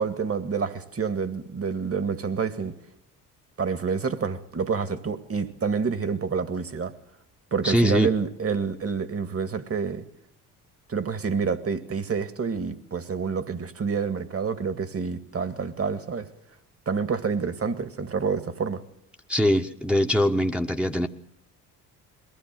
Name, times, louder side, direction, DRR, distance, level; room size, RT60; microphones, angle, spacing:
voice 1, 0.0-2.8 3.6-6.9 7.5-10.0 10.9-16.3 16.9-18.8, right 5 dB, 30° right, 2.0 m, -28 dB
voice 2, 7.6-8.1 19.3-21.1, equal, ahead, 1.3 m, -22 dB
22.5 x 16.0 x 7.7 m
hypercardioid pair, 50°, 46 cm